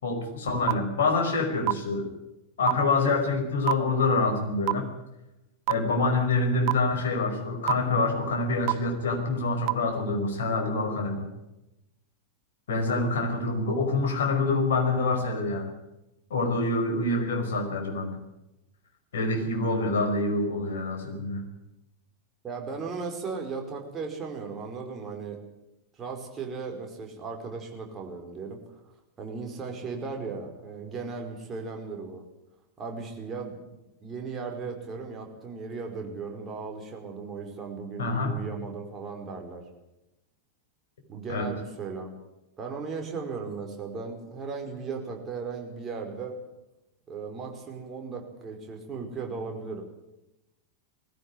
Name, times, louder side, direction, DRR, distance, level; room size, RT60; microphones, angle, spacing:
voice 1, 0.0-2.1 2.6-4.9 5.7-11.3 12.7-15.7 16.3-18.2 19.1-21.4 38.0-38.4 41.3-41.5, left 3 dB, 60° left, 3 dB, 5.3 m, -26 dB
sound 1, 0.7-0.8 1.7-1.8 2.7-2.8 3.7-3.8 4.7-4.8 5.7-5.8 6.7-6.8 7.7-7.8 8.7-8.8 9.7-9.8, right 27 dB, 45° right, 0.6 m, -22 dB
voice 2, 22.4-25.4 26.0-28.8 29.2-32.2 32.8-33.7 34.0-39.6 41.1-42.1 42.6-46.4 47.1-49.8, right 4 dB, 25° right, 2 dB, 5.0 m, -36 dB
20.0 x 15.0 x 9.6 m, 0.93 s
figure-of-eight pair, 90°, 0 cm